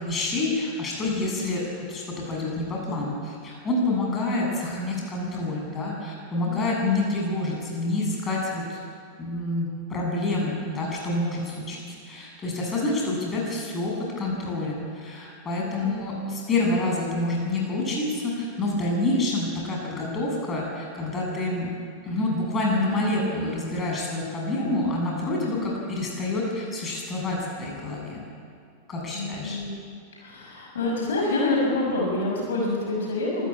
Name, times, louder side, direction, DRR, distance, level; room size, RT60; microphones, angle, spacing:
voice 1, 0.0-8.8 9.2-11.8 12.1-21.7 22.0-28.2 28.9-29.6, left 2 dB, 20° left, -2 dB, 7.6 m, -27 dB
voice 2, 6.3-6.7 15.6-16.0 25.4-25.6 29.1-29.8 30.2-33.5, left 2 dB, 65° left, -2 dB, 6.1 m, -27 dB
26.0 x 14.5 x 8.7 m, 2.2 s
figure-of-eight pair, 90°, 0 cm